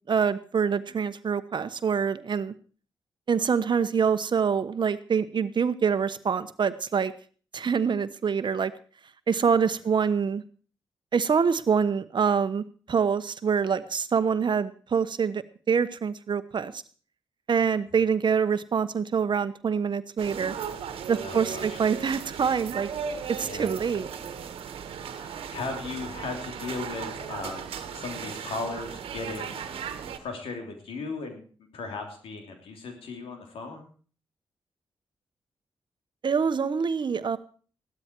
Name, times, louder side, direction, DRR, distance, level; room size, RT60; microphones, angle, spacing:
voice 1, 0.1-2.5 3.3-7.1 7.5-8.7 9.3-10.4 11.1-16.8 17.5-20.5 21.1-22.9 23.4-24.1 36.2-37.4, right 6 dB, 55° right, 12 dB, 1.1 m, -25 dB
sound 1, 20.2-30.2, right 7 dB, 85° right, 1.5 m, -37 dB
voice 2, 21.2-21.8 23.4-23.7 24.9-29.7 30.2-31.4 31.7-33.9, left 4 dB, 85° left, 4 dB, 3.3 m, -37 dB
15.5 x 12.5 x 4.6 m, 0.41 s
supercardioid pair, 50°, 9 cm